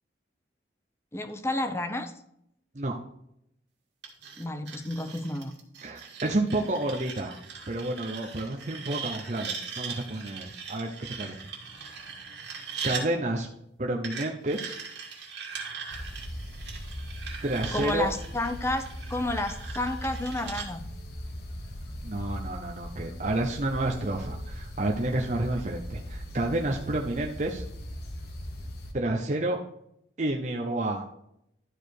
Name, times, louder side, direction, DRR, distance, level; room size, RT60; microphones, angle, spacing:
voice 1, 1.1-2.1 4.4-5.5 17.7-18.8 19.1-20.9, left 1 dB, 15° left, 8 dB, 0.6 m, -31 dB
sound 1, 4.0-13.1 14.0-20.7, right 6 dB, 75° right, 2.0 m, -40 dB
voice 2, 5.8-7.4 7.7-11.4 11.8-11.9 12.8-13.5 13.8-14.8 17.4-18.1 22.0-27.6 28.9-29.6 30.2-31.1, right 2 dB, 40° right, 0 dB, 0.8 m, -30 dB
sound 2, 15.9-28.9, equal, 60° left, 1.2 m, -39 dB
11.5 x 4.8 x 4.7 m, 0.77 s
head